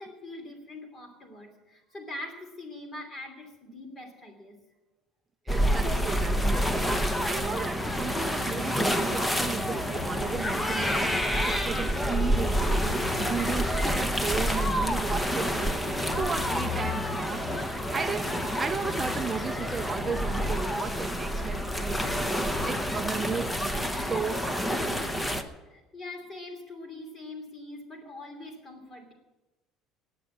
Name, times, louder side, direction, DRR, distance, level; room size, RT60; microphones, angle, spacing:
voice 1, 0.0-4.6 25.7-29.1, left 2 dB, 20° left, 5 dB, 2.8 m, -43 dB
sound 1, 5.5-25.4, equal, 5° left, 0.8 m, -28 dB
voice 2, 5.5-11.0 11.4-15.8 16.2-22.3 22.6-25.1, right 6 dB, 20° right, 7 dB, 0.4 m, -35 dB
19.0 x 6.8 x 8.6 m, 1.1 s
cardioid pair, 160°, 0 cm